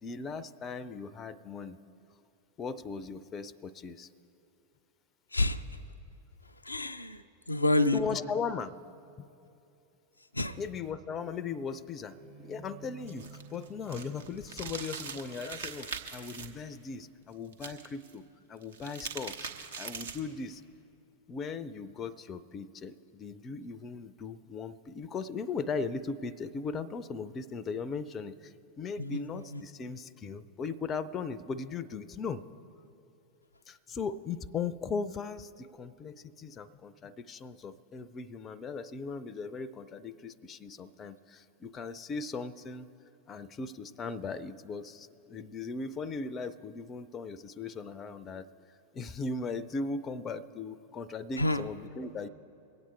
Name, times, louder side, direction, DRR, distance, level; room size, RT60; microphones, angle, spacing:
voice 1, 0.0-1.8 2.6-4.1 7.9-8.7 9.2-9.3 10.6-19.5 19.8-20.6 21.3-32.4 33.7-42.9 43.3-52.3, left 4 dB, 25° left, 16 dB, 0.5 m, -38 dB
voice 2, 5.3-5.6 6.6-7.2 7.5-8.0 10.3-10.6 29.0-29.2 29.5-29.6 51.4-51.6, left 2 dB, 85° left, 7 dB, 0.4 m, -28 dB
Bowed string instrument, 12.1-17.4, right 5 dB, 40° right, 1.4 m, -54 dB
sound 1, 13.0-16.5 17.5-18.1 18.6-20.3, right 5 dB, 65° right, 1.1 m, -41 dB
23.0 x 8.7 x 4.3 m, 2.7 s
figure-of-eight pair, 90°, 0 cm